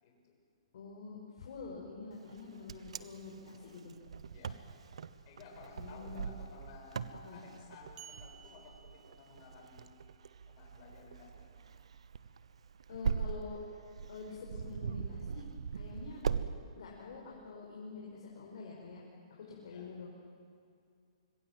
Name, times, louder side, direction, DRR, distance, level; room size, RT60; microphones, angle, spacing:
voice 1, 0.0-0.4 3.3-3.4 4.3-4.6 5.2-10.0 10.5-11.5 19.7-19.9, left 4 dB, 35° left, 0 dB, 6.6 m, -55 dB
voice 2, 0.7-3.9 5.7-6.3 7.2-7.4 12.9-13.6 14.1-15.4 15.7-16.2 16.7-19.0 19.4-20.1, left 4 dB, 60° left, -3 dB, 5.5 m, -46 dB
Wind, 2.3-16.5, right 6 dB, 80° right, 1.0 m, -41 dB
sound 1, 8.0-9.8, right 10 dB, 20° right, 1.5 m, -56 dB
25.5 x 21.0 x 7.8 m, 2.2 s
hypercardioid pair, 155°, 3 cm